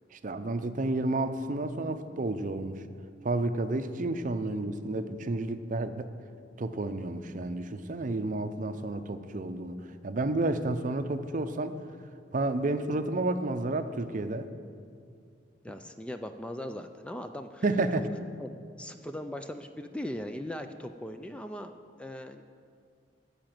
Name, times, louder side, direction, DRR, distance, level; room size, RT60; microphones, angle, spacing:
voice 1, 0.1-2.8 3.2-6.1 6.6-11.8 12.3-14.5 17.6-18.0, right 2 dB, 45° right, 10 dB, 0.6 m, -31 dB
voice 2, 15.6-17.6 18.4-18.5 18.8-21.7 22.0-22.4, left 1 dB, 5° left, 7 dB, 0.3 m, -39 dB
12.5 x 5.1 x 9.0 m, 2.3 s
head